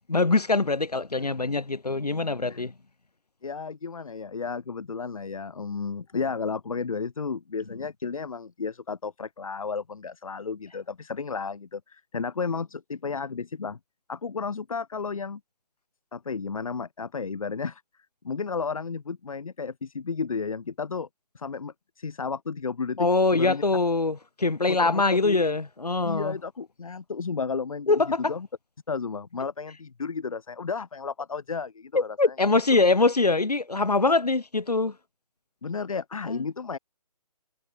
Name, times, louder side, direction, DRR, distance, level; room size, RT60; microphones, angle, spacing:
voice 1, 0.1-2.7 23.0-26.4 27.9-28.3 31.9-34.9 36.3-36.4, left 3 dB, 85° left, 1.6 m, -23 dB
voice 2, 3.4-13.8 14.1-15.4 16.1-17.8 18.2-21.1 21.3-23.6 24.7-25.4 26.0-28.5 28.9-32.3 35.6-36.8, left 5 dB, 60° left, 4.4 m, -33 dB
figure-of-eight pair, 145°, 20 cm